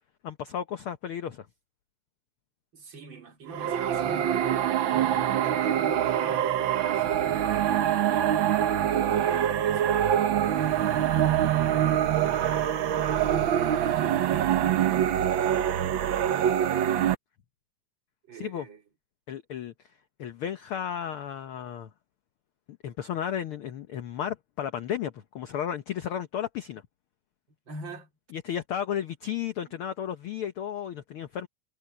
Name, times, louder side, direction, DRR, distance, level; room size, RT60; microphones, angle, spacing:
voice 1, 0.2-1.5 18.4-18.7 19.3-19.7 20.2-21.9 22.8-26.8 28.3-31.5, left 9 dB, 70° left, 1.3 m, -33 dB
voice 2, 2.7-4.5 4.9-7.9 8.8-13.0 13.8-14.8 15.2-16.9 18.3-18.8 27.7-28.1 29.6-29.8, right 5 dB, 40° right, 4.1 m, -45 dB
sound 1, 3.5-17.1, right 10 dB, 70° right, 1.1 m, -25 dB
omnidirectional pair, 3.5 m